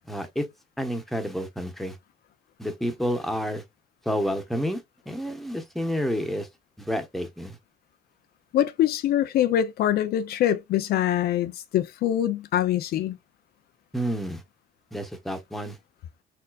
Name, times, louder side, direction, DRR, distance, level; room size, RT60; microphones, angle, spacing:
voice 1, 0.1-0.5 0.8-2.0 2.6-3.6 4.0-6.5 6.8-7.6 13.9-14.4 14.9-15.8, equal, ahead, 1.2 m, -29 dB
voice 2, 8.5-13.2, left 11 dB, 65° left, 0.6 m, -24 dB
4.4 x 3.8 x 2.4 m
cardioid pair, 110°, 17 cm